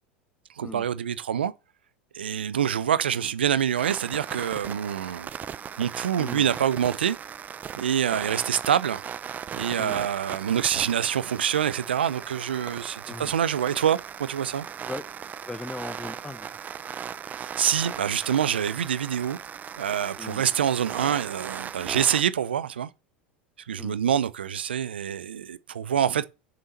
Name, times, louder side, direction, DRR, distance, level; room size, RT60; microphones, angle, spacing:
voice 1, 0.6-1.5 2.1-5.3 5.8-7.2 7.8-9.0 9.5-14.6 17.4-19.4 19.8-22.9 23.7-26.2, right 9 dB, 80° right, 0.7 m, -26 dB
sound 1, 3.7-22.2, right 8 dB, 30° right, 0.7 m, -38 dB
voice 2, 6.2-6.5 9.8-10.0 13.1-13.4 14.8-15.0 15.4-16.6 20.2-20.5 23.8-24.0, left 2 dB, 10° left, 0.8 m, -38 dB
7.2 x 6.8 x 6.7 m
hypercardioid pair, 85°, 6 cm